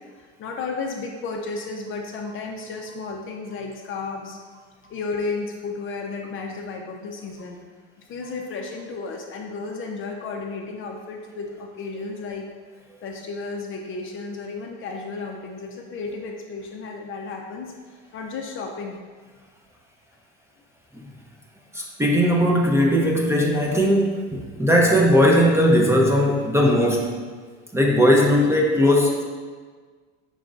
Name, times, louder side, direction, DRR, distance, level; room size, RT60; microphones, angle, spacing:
voice 1, 0.1-4.4 4.9-7.6 8.0-12.5 13.0-17.7 18.1-19.0, left 4 dB, 40° left, 1 dB, 0.5 m, -33 dB
voice 2, 21.7-27.2 27.7-29.2, equal, 10° right, -2 dB, 0.6 m, -18 dB
5.3 x 3.6 x 2.4 m, 1.5 s
supercardioid pair, 100°, 33 cm